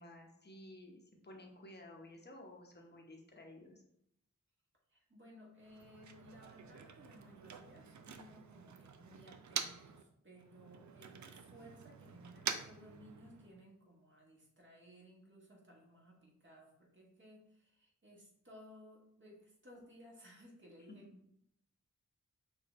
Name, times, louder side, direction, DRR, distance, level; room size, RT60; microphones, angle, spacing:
voice 1, 0.0-3.8, left 1 dB, 35° left, 1 dB, 1.0 m, -54 dB
voice 2, 4.9-21.3, equal, 35° right, -3 dB, 1.6 m, -59 dB
Motor vehicle (road), 5.6-10.0 10.3-13.6, right 7 dB, 65° right, 0.5 m, -46 dB
5.9 x 2.6 x 3.1 m, 0.75 s
wide cardioid pair, 65°, 31 cm